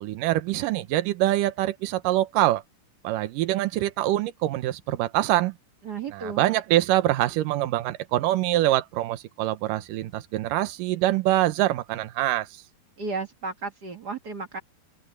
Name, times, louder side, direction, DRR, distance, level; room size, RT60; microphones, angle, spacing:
voice 1, 0.0-2.6 3.0-5.5 6.1-12.5, right 15 dB, 75° right, 2.3 m, -24 dB
voice 2, 5.8-6.4 13.0-14.6, right 4 dB, 55° right, 1.0 m, -33 dB
open air
omnidirectional pair, 4.4 m